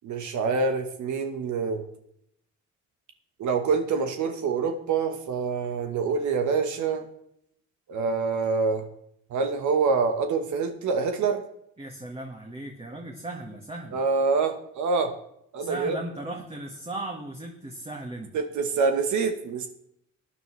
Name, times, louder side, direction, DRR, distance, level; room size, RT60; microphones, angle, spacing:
voice 1, 0.0-1.8 3.4-7.1 7.9-8.9 9.3-11.4 13.9-15.1 15.5-16.0 18.3-19.7, right 4 dB, 75° right, 6 dB, 1.3 m, -26 dB
voice 2, 11.8-14.0 15.6-18.3, right 2 dB, 20° right, 1 dB, 1.6 m, -37 dB
15.5 x 9.8 x 3.2 m, 0.73 s
cardioid pair, 90°, 30 cm